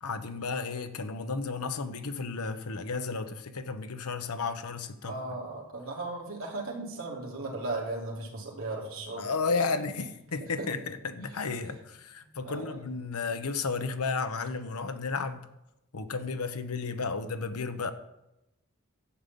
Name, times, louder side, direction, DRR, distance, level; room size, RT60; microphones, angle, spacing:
voice 1, 0.0-5.1 9.2-15.5 15.9-17.9, left 4 dB, 85° left, 0.9 m, -33 dB
voice 2, 5.0-9.3 10.4-10.7 12.4-12.8, right 2 dB, 65° right, 3.1 m, -36 dB
11.5 x 5.3 x 8.4 m
head